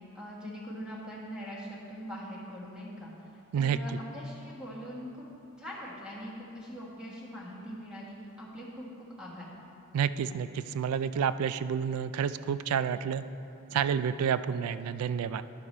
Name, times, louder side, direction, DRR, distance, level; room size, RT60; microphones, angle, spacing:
voice 1, 0.1-3.3 3.5-5.2 5.6-9.5, equal, 5° right, -6 dB, 1.4 m, -42 dB
voice 2, 9.9-13.2 13.7-15.4, right 7 dB, 85° right, 16 dB, 0.3 m, -29 dB
10.5 x 6.6 x 4.3 m, 2.8 s
head